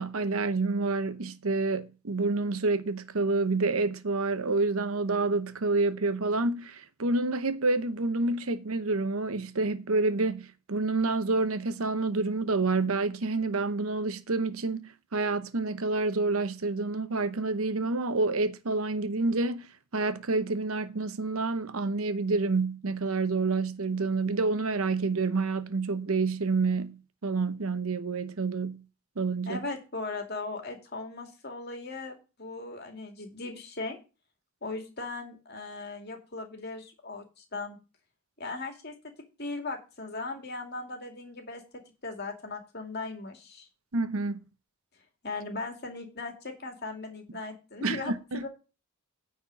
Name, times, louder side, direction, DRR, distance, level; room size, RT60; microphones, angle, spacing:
voice 1, 0.0-19.7 19.9-28.8 29.2-29.6 43.9-44.4 47.8-48.4, right 3 dB, 75° right, 0.9 m, -28 dB
voice 2, 29.5-34.0 34.6-37.8 38.4-38.9 39.4-41.6 42.0-43.7 45.2-48.5, left 3 dB, 45° left, 2.4 m, -38 dB
9.7 x 4.4 x 7.4 m
head